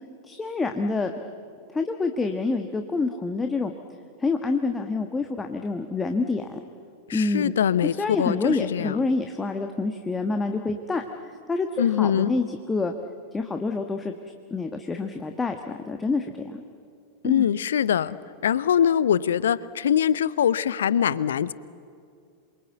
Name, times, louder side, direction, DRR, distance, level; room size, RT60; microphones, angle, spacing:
voice 1, 0.2-1.1 1.7-3.7 4.2-6.6 7.1-7.5 7.8-12.9 13.3-14.1 14.5-16.6 17.2-17.4, left 3 dB, 15° left, 5 dB, 1.3 m, -27 dB
voice 2, 7.1-9.0 11.8-12.3 17.2-18.2 18.4-21.5, left 9 dB, 65° left, 19 dB, 0.7 m, -23 dB
27.5 x 23.0 x 8.2 m, 2.3 s
figure-of-eight pair, 90°, 0 cm